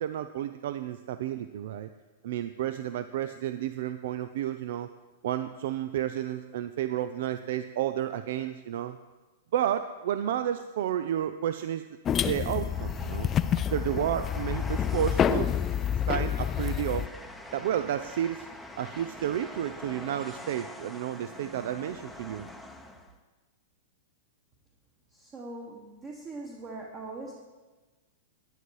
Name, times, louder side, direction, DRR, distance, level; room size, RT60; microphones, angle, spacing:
voice 1, 0.0-1.9 2.2-4.9 5.2-9.0 9.5-11.9 12.2-13.3 13.7-15.5 16.1-17.1 17.5-18.5 18.8-22.5, right 11 dB, 65° right, 11 dB, 0.5 m, -31 dB
sound 1, 12.1-17.1, left 9 dB, 20° left, 0.4 m, -28 dB
Train, 12.7-23.2, left 1 dB, ahead, 0.8 m, -45 dB
voice 2, 25.1-27.3, right 2 dB, 25° right, -1 dB, 1.5 m, -41 dB
10.5 x 10.0 x 4.8 m, 1.2 s
hypercardioid pair, 145°, 0 cm